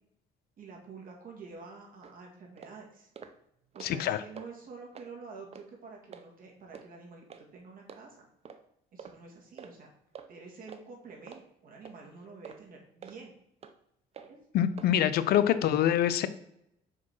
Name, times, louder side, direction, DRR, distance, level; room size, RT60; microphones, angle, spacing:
voice 1, 0.6-3.1 3.7-7.3 7.5-8.3 8.9-9.9 10.3-13.3 14.2-14.4 15.6-15.7, right 4 dB, 55° right, 1 dB, 2.1 m, -48 dB
sound 1, 2.0-2.1 2.6-2.7 3.2-3.3 3.6-4.0 4.4-4.5 4.9-5.1 5.5-5.7 6.1-6.2 6.7-6.9 7.3-7.4 7.9-8.0 8.4-8.6 9.0-9.2 9.6-9.7 10.1-10.3 10.7-10.8 11.3-11.4 11.8-12.0 12.4-12.6 13.0-13.2 13.6-13.7 14.1-14.3 14.8-14.9 15.3-15.5, right 6 dB, 35° right, 0.7 m, -47 dB
voice 2, 3.8-4.2 14.5-16.3, left 10 dB, 65° left, 13 dB, 0.6 m, -25 dB
5.1 x 4.7 x 6.0 m, 0.78 s
cardioid pair, 110°, 17 cm